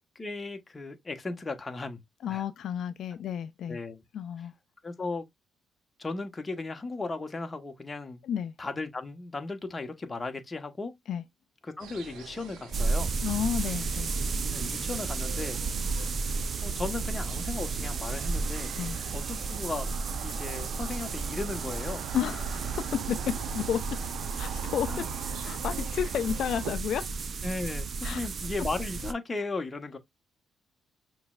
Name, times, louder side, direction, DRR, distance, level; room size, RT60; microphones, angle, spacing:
voice 1, 0.1-2.0 2.3-2.4 3.7-4.0 4.8-5.2 6.0-8.2 8.6-10.9 11.6-13.1 14.5-15.6 16.6-18.7 19.1-19.9 20.2-22.0 24.9-25.1 27.4-30.0, left 3 dB, 25° left, 1.1 m, -36 dB
voice 2, 2.2-3.8 4.1-4.5 8.2-8.5 11.1-11.2 13.2-14.1 18.8-19.0 22.1-24.0 24.4-25.1 25.4-27.1 28.0-28.2, left 9 dB, 70° left, 0.3 m, -32 dB
sound 1, 11.8-26.7, right 8 dB, 85° right, 0.7 m, -43 dB
sound 2, 12.7-29.1, right 4 dB, 45° right, 0.5 m, -33 dB
5.8 x 3.1 x 2.4 m
cardioid pair, 90°, 0 cm